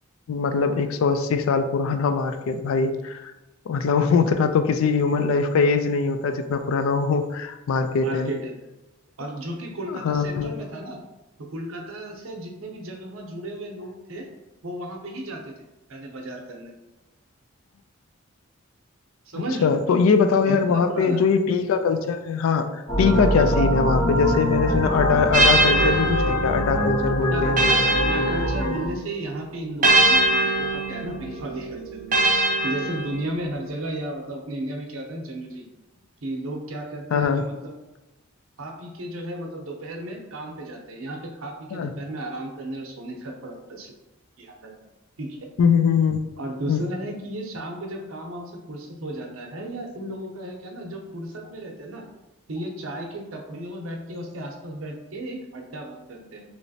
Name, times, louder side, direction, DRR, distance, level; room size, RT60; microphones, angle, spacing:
voice 1, 0.3-3.3 3.7-8.3 9.9-10.6 19.6-27.7 37.1-37.4 41.7-41.9 45.6-46.2 46.7-46.8, left 5 dB, 75° left, 8 dB, 0.3 m, -22 dB
voice 2, 8.0-8.5 9.2-11.0 11.4-14.3 14.6-15.5 15.9-16.7 19.3-19.7 20.3-21.2 23.4-23.5 27.2-35.7 36.2-37.7 38.6-43.9 44.4-44.7 45.2-45.5 46.4-52.0 52.5-56.4, right 1 dB, 75° right, 2 dB, 0.6 m, -34 dB
sound 1, 22.9-28.8, equal, 20° left, 0.6 m, -23 dB
sound 2, 25.3-29.0 29.8-33.5, right 2 dB, 40° right, 0.5 m, -23 dB
3.1 x 3.0 x 2.7 m, 1.0 s
head